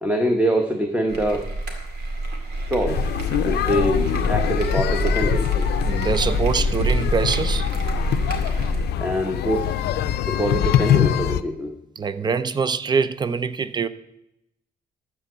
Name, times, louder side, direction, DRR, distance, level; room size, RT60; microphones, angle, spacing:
voice 1, 0.0-1.5 2.7-3.0 3.4-4.0 4.3-5.7 9.0-9.7 10.2-11.7, equal, 10° right, 1.0 m, -24 dB
sound 1, 1.1-8.9, right 1 dB, 85° right, 2.2 m, -27 dB
sound 2, 2.9-11.4, left 10 dB, 85° left, 0.5 m, -24 dB
voice 2, 5.8-7.7 12.0-13.9, right 5 dB, 25° right, 0.5 m, -24 dB
13.0 x 4.6 x 7.8 m
cardioid pair, 130°, 16 cm